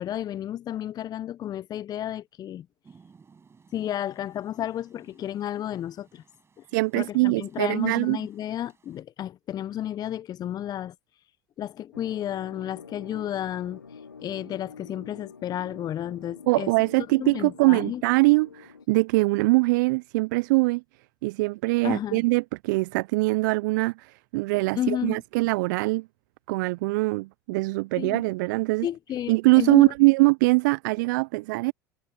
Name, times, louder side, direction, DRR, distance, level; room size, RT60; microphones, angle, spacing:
voice 1, 0.0-2.7 3.7-6.2 7.0-10.9 11.6-13.8 14.2-16.7 17.2-18.0 21.8-22.2 24.8-25.2 28.0-28.2 28.8-29.9, left 11 dB, 35° left, 0.8 m, -32 dB
Rain, 2.8-9.0, right 5 dB, 25° right, 7.6 m, -60 dB
voice 2, 6.7-8.2 16.5-20.8 21.2-26.1 26.5-28.9 29.3-31.7, right 24 dB, 65° right, 0.6 m, -22 dB
sound 1, 11.9-18.9, left 5 dB, 90° left, 1.8 m, -47 dB
hypercardioid pair, 75°, 11 cm